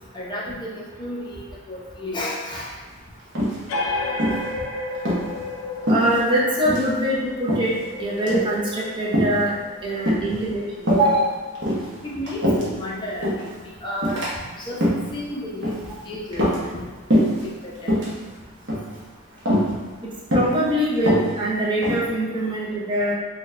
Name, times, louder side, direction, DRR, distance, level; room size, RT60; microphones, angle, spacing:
voice 1, 0.1-2.7 10.3-10.4 12.0-13.2 13.6-14.2 14.7-14.8 15.1-16.5 16.7-18.0, left 1 dB, 20° left, -5 dB, 0.6 m, -32 dB
sound 1, 3.3-3.8 4.2-4.5 4.9-5.2 5.9-6.4 6.6-6.9 7.5-7.8 8.2-8.5 9.1-9.4 10.1-10.4 10.8-11.1 11.5-12.8 13.2-13.5 14.0-14.3 14.7-15.1 15.6-15.9 16.3-16.8 17.1-17.4 17.8-18.1 18.7-19.0 19.5-19.7 20.3-20.6 21.0-22.1, equal, 55° right, 1.0 m, -22 dB
sound 2, 3.7-10.9, left 1 dB, 70° left, 0.5 m, -32 dB
voice 2, 5.9-9.5 9.8-11.4 20.3-23.1, right 1 dB, 20° right, -5 dB, 0.6 m, -23 dB
4.0 x 2.3 x 3.2 m, 1.4 s
head